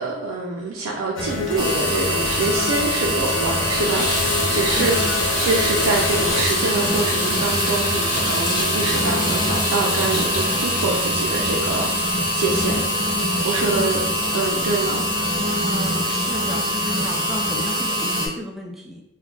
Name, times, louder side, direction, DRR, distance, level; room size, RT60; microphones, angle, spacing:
voice 1, 0.0-5.0 5.4-12.8 13.4-14.0 14.3-15.0, right 3 dB, 90° right, -2 dB, 0.4 m, -25 dB
sound 1, 1.2-18.2, left 1 dB, 65° left, 0.6 m, -28 dB
sound 2, 1.6-18.3, equal, 25° right, 0.8 m, -25 dB
Water tap faucet / Bathtub (filling or washing), 3.4-15.7 16.4-16.5 17.0-17.1, left 1 dB, 40° left, 0.9 m, -28 dB
voice 2, 15.6-19.0, left 1 dB, ahead, 0 dB, 0.3 m, -34 dB
2.4 x 2.2 x 3.6 m, 0.88 s
head